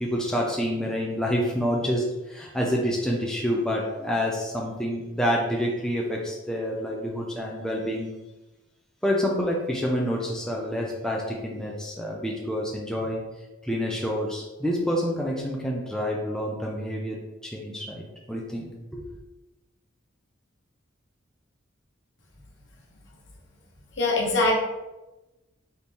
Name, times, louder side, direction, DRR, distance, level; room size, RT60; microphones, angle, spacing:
voice 1, 0.0-8.1 9.0-13.3 13.6-19.0, equal, 5° left, -2 dB, 0.5 m, -28 dB
voice 2, 24.0-24.6, left 2 dB, 65° left, -2 dB, 1.1 m, -22 dB
4.1 x 3.1 x 3.5 m, 1.0 s
head